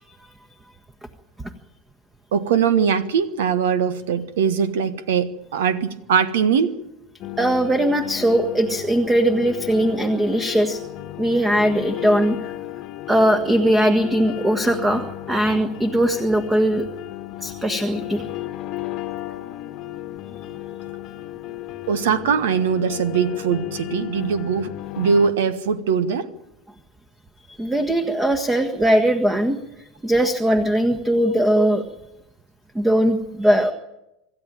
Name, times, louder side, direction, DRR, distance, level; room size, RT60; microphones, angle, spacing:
voice 1, 2.3-6.8 21.9-24.7 25.0-26.3 31.6-31.7, right 6 dB, 65° right, 14 dB, 1.3 m, -21 dB
sound 1, 7.2-25.3, left 15 dB, 45° left, 1.3 m, -34 dB
voice 2, 7.4-10.8 11.2-12.4 13.1-16.8 17.4-18.2 27.5-31.8 32.7-33.7, right 1 dB, 10° right, 7 dB, 1.5 m, -20 dB
26.0 x 13.0 x 8.9 m, 0.90 s
figure-of-eight pair, 75°, 0 cm